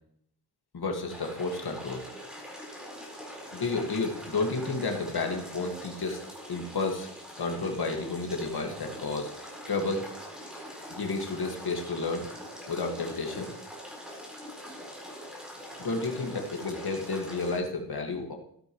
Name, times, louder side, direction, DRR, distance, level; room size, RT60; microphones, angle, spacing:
voice 1, 0.7-2.1 3.5-6.2 6.5-7.1 7.4-9.3 9.7-10.1 10.9-12.3 12.7-13.5 15.8-18.3, left 3 dB, 70° left, 2 dB, 1.9 m, -31 dB
sound 1, 1.1-17.6, equal, ahead, 4.4 m, -43 dB
14.0 x 13.0 x 3.1 m, 0.65 s
wide cardioid pair, 95°, 40 cm